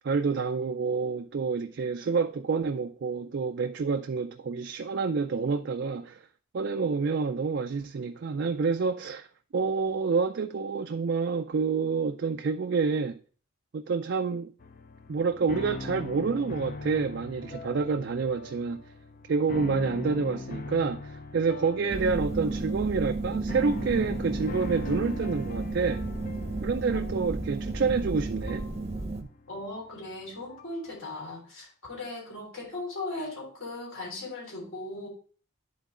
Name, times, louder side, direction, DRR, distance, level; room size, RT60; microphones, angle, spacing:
voice 1, 0.0-6.2 6.5-9.3 9.5-13.2 13.7-14.5 15.1-18.8 19.3-26.0 26.6-28.7, right 5 dB, 55° right, 0.4 m, -28 dB
sound 1, 14.6-30.8, left 3 dB, 40° left, 0.4 m, -42 dB
sound 2, 21.9-29.2, right 2 dB, 30° right, 0.7 m, -32 dB
voice 2, 26.9-27.5 27.8-27.9 29.5-35.1, left 2 dB, 75° left, 3.4 m, -38 dB
10.5 x 4.0 x 3.7 m
head